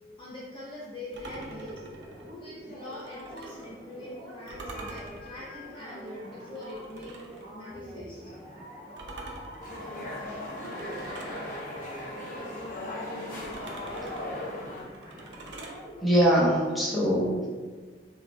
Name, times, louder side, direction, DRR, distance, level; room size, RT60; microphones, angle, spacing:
voice 1, 0.2-1.7 2.3-7.2 7.5-8.3, left 1 dB, 25° left, -7 dB, 0.6 m, -43 dB
sound 1, 1.1-3.7 4.5-7.5 9.0-11.4 13.4-15.8, right 2 dB, 85° right, 0.6 m, -45 dB
sound 2, 1.3-16.1, equal, 50° right, 1.5 m, -46 dB
sound 3, 9.6-14.8, left 1 dB, 50° left, 0.9 m, -37 dB
voice 2, 16.0-17.5, equal, ahead, -8 dB, 0.9 m, -22 dB
4.5 x 3.4 x 2.3 m, 1.5 s
head